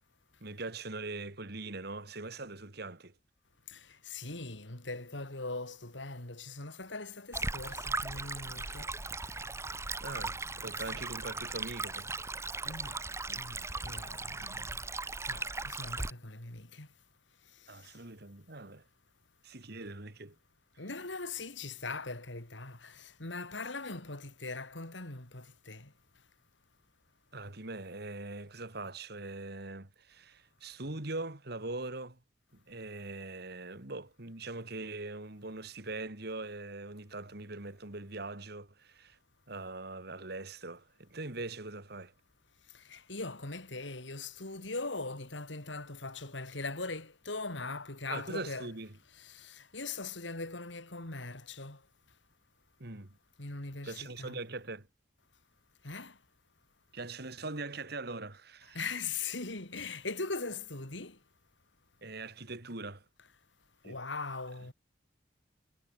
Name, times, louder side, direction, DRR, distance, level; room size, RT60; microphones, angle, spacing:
voice 1, 0.4-3.1 10.0-12.1 17.7-18.8 19.4-20.4 27.3-32.2 32.5-39.2 39.5-42.1 48.1-48.9 52.8-53.1 53.8-54.9 56.9-58.8 62.0-63.0 63.8-64.0, right 2 dB, 60° right, 2.5 m, -42 dB
voice 2, 4.1-8.9 10.9-11.0 12.6-13.0 13.3-13.6 13.8-14.6 15.3-16.9 20.8-22.8 23.2-25.8 42.9-48.7 49.7-51.8 53.4-54.4 55.8-56.1 58.8-61.1 63.8-64.7, left 3 dB, 85° left, 4.0 m, -40 dB
Stream, 7.3-16.1, right 3 dB, 15° right, 1.5 m, -38 dB
head